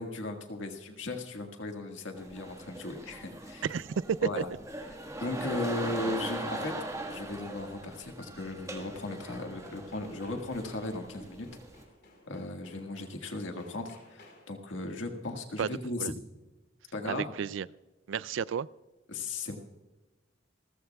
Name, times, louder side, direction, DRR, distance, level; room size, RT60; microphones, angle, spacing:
voice 1, 0.0-3.6 4.2-4.5 5.2-6.7 7.1-11.5 12.3-16.1 16.9-17.3 19.1-19.6, left 2 dB, 85° left, 3 dB, 1.7 m, -36 dB
sound 1, 2.1-11.8, right 1 dB, 15° right, 1.5 m, -40 dB
voice 2, 3.6-3.9 4.2-4.4 15.6-15.7 16.0-16.1 17.0-17.7 18.1-18.7, right 7 dB, 80° right, 19 dB, 0.4 m, -32 dB
sound 2, 9.3-14.7, left 2 dB, 60° left, 4.4 m, -60 dB
29.5 x 14.5 x 2.3 m, 1.2 s
head